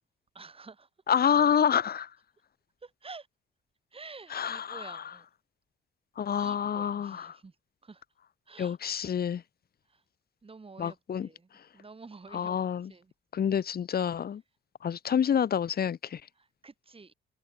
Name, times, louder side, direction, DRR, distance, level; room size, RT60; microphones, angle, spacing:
voice 1, 0.3-0.9 2.8-3.3 3.9-5.3 6.3-7.5 7.8-8.0 8.5-8.8 9.9-10.0 10.4-12.6 12.9-13.1 16.4-17.1, right 4 dB, 30° right, 7.0 m, -49 dB
voice 2, 1.1-2.1 4.3-5.1 6.2-7.4 8.6-9.4 10.8-11.3 12.3-12.9 13.3-14.4 14.8-16.2, left 8 dB, 50° left, 1.6 m, -28 dB
cardioid pair, 90°, 20 cm